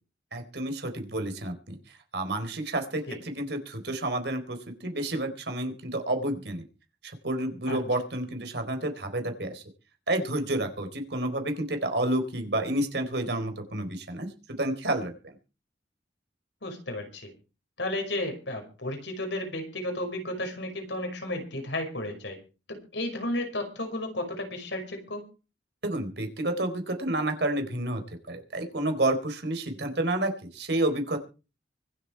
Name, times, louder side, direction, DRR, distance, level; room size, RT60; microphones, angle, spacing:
voice 1, 0.3-1.8 2.1-6.6 7.0-9.6 10.1-15.4 25.8-28.0 28.3-31.2, right 1 dB, 65° right, 6 dB, 4.0 m, -30 dB
voice 2, 16.6-17.3 17.8-22.4 22.7-25.2, left 1 dB, 85° left, 4 dB, 5.5 m, -33 dB
24.5 x 8.2 x 4.7 m, 0.33 s
head